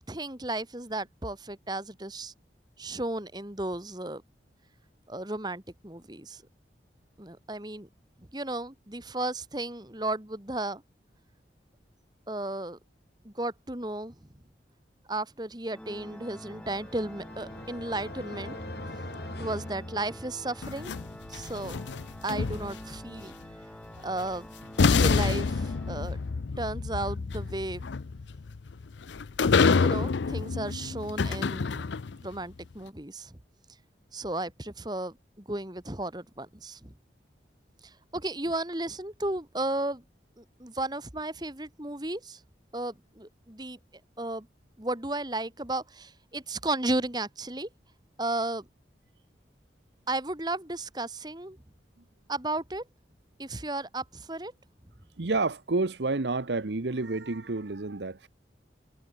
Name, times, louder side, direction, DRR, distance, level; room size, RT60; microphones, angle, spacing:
voice 1, 0.0-2.3 2.8-4.2 5.1-6.4 7.2-7.9 8.3-10.8 12.3-12.8 13.2-14.1 15.1-18.6 19.4-20.9 21.3-21.8 22.2-23.3 24.0-24.5 24.8-26.2 26.6-27.9 29.8-32.0 32.2-33.4 34.1-36.9 37.8-40.0 40.4-42.4 42.7-43.8 44.2-44.5 44.8-47.7 48.2-48.7 50.1-51.6 52.3-52.8 53.4-54.5, right 2 dB, 25° right, 2.0 m, -34 dB
Organ, 15.7-26.5, equal, 5° left, 5.2 m, -46 dB
sound 1, 16.3-20.7, left 1 dB, 65° left, 2.9 m, -42 dB
sound 2, 20.6-23.0 24.2-24.3 24.8-32.3, left 4 dB, 85° left, 0.5 m, -27 dB
voice 2, 55.2-58.3, right 3 dB, 75° right, 1.0 m, -29 dB
head